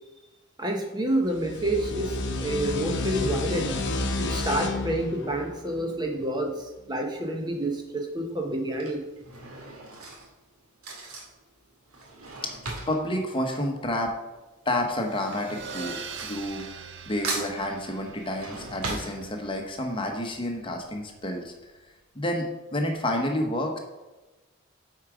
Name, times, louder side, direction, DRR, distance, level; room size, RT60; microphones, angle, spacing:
voice 1, 0.6-3.8 4.2-9.1, right 1 dB, 20° right, 2 dB, 0.7 m, -28 dB
sound 1, 1.3-6.6, left 2 dB, 55° left, 0.9 m, -31 dB
Drawer open or close / Cutlery silverware, 7.2-7.6 8.5-14.4 14.6-17.0 17.2-19.8 20.2-20.3 20.5-20.6, right 3 dB, 85° right, 1.8 m, -38 dB
voice 2, 12.9-14.1 14.7-16.7 17.0-21.5 22.1-23.8, left 1 dB, 25° left, 3 dB, 0.9 m, -29 dB
sound 2, 14.8-21.9, right 6 dB, 55° right, 0.6 m, -44 dB
8.4 x 4.8 x 4.9 m, 1.1 s
head